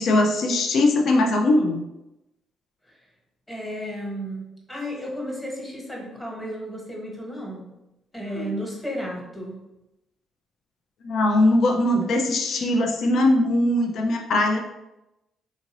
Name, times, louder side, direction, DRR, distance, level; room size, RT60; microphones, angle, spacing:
voice 1, 0.0-1.8 8.3-8.5 11.0-14.6, left 1 dB, 65° left, 2 dB, 0.4 m, -20 dB
voice 2, 3.5-7.7 8.1-9.6, equal, 15° left, -2 dB, 1.2 m, -33 dB
3.8 x 2.5 x 2.9 m, 0.93 s
cardioid pair, 90°, 0 cm